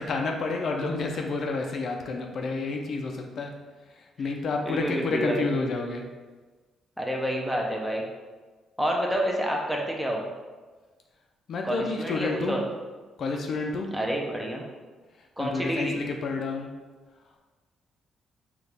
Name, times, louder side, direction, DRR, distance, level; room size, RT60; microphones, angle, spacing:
voice 1, 0.0-3.5 3.9-6.1 11.5-12.6 13.2-13.9 15.4-16.7, left 3 dB, 60° left, 2 dB, 0.4 m, -30 dB
voice 2, 4.7-5.5 7.0-8.0 8.8-10.2 11.6-12.6 13.9-14.6 15.4-16.0, equal, 5° right, -1 dB, 0.7 m, -28 dB
4.2 x 2.4 x 3.4 m, 1.3 s
cardioid pair, 90°, 0 cm